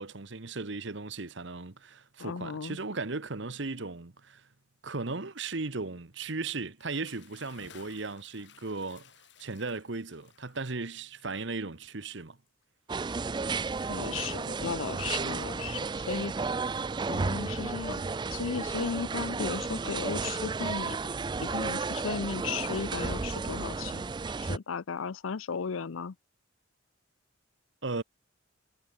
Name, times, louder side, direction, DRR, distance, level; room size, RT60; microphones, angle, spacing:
voice 1, 0.0-4.4 4.8-9.1 9.4-12.4 27.8-28.0, right 3 dB, 65° right, 1.2 m, -36 dB
voice 2, 2.2-2.8 13.9-16.5 17.1-18.0 18.3-21.0 21.4-24.0 24.4-26.1, left 5 dB, 90° left, 0.6 m, -35 dB
Bathtub (filling or washing) / Splash splatter, 6.7-12.6, left 6 dB, 60° left, 3.2 m, -58 dB
sound 1, 12.9-24.6, right 4 dB, 20° right, 0.3 m, -33 dB
head